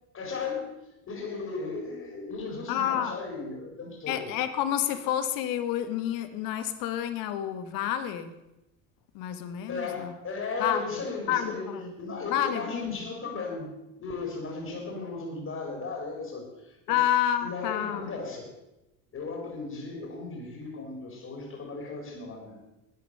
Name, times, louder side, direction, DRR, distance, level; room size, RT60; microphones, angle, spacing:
voice 1, 0.1-0.7 1.0-4.3 9.7-17.0 17.4-18.5 19.1-22.6, left 4 dB, 40° left, 1 dB, 4.5 m, -36 dB
voice 2, 2.7-3.2 4.1-8.3 9.1-10.1 10.6-10.8 11.3-11.9 12.2-13.0 16.9-18.1, left 11 dB, 65° left, 11 dB, 1.5 m, -29 dB
12.0 x 9.6 x 6.7 m, 0.93 s
hypercardioid pair, 85°, 37 cm